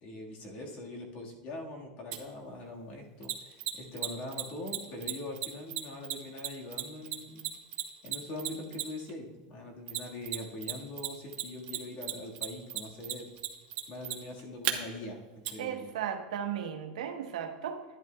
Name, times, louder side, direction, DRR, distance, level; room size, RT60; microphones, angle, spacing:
voice 1, 0.0-7.4 8.0-13.3 13.9-15.9, left 2 dB, 40° left, 0 dB, 1.6 m, -42 dB
Mechanisms, 2.1-2.2 3.2-9.1 9.9-10.7 11.0-14.7 15.4-15.5, right 14 dB, 45° right, 1.0 m, -34 dB
voice 2, 15.6-17.8, right 9 dB, 85° right, 5 dB, 1.0 m, -36 dB
11.0 x 11.0 x 2.3 m, 1.2 s
supercardioid pair, 150°, 4 cm